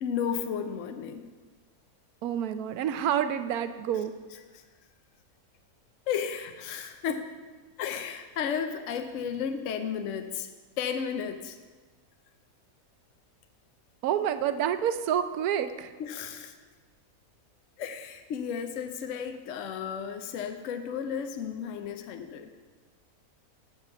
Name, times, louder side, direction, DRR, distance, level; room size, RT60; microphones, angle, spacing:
voice 1, 0.0-1.3 4.5-4.6 6.1-7.3 7.8-10.5 10.8-11.6 16.0-16.5 17.8-22.5, left 7 dB, 65° left, 7 dB, 0.9 m, -33 dB
voice 2, 2.2-4.1 14.0-15.9, right 9 dB, 80° right, 11 dB, 1.1 m, -28 dB
7.8 x 7.3 x 6.8 m, 1.3 s
omnidirectional pair, 1.6 m